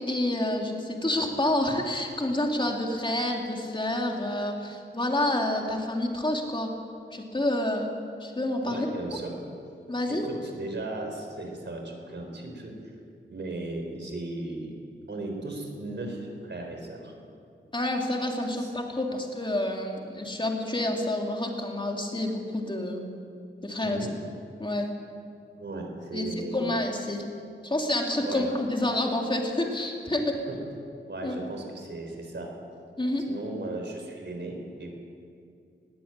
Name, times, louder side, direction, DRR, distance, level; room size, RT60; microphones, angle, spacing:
voice 1, 0.0-6.7 7.1-8.9 9.9-10.3 17.7-23.1 23.6-24.1 24.6-24.9 26.1-27.2 27.6-30.4 31.2-31.3 33.0-33.2, left 1 dB, 25° left, 1 dB, 3.0 m, -28 dB
voice 2, 8.6-9.3 10.1-12.7 13.3-14.7 15.1-17.1 18.6-18.7 23.8-24.1 25.6-26.7 28.2-28.5 30.5-30.6 31.1-32.5 33.3-34.9, right 2 dB, 60° right, 2 dB, 4.1 m, -36 dB
20.0 x 15.5 x 9.0 m, 2.5 s
wide cardioid pair, 110°, 20 cm